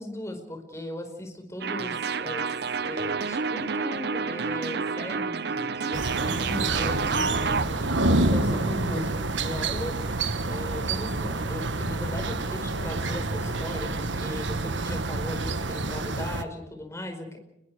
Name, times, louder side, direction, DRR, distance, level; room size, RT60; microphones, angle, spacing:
voice 1, 0.0-2.5 2.8-7.9 8.3-10.0 10.5-17.4, left 1 dB, 15° left, 4 dB, 4.9 m, -38 dB
sound 1, 1.6-7.7, right 5 dB, 60° right, 0.8 m, -29 dB
sound 2, 5.9-16.4, right 2 dB, 80° right, 1.4 m, -28 dB
30.0 x 21.5 x 4.9 m, 0.88 s
head